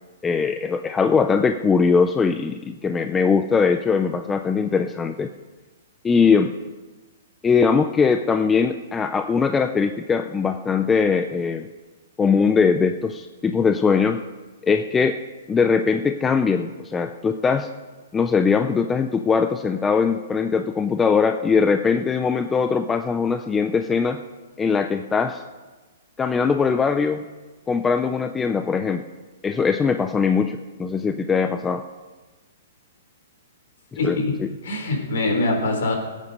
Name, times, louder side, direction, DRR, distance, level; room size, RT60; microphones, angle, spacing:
voice 1, 0.2-5.3 6.0-6.5 7.4-11.7 12.2-14.2 14.6-15.2 15.5-17.7 18.1-24.2 24.6-25.4 26.2-27.3 27.7-29.0 29.4-31.8 34.0-34.2, left 5 dB, 10° left, 8 dB, 0.3 m, -21 dB
voice 2, 34.0-35.9, left 2 dB, 60° left, 1 dB, 3.8 m, -24 dB
18.5 x 8.4 x 5.4 m, 1.3 s
hypercardioid pair, 175°, 0 cm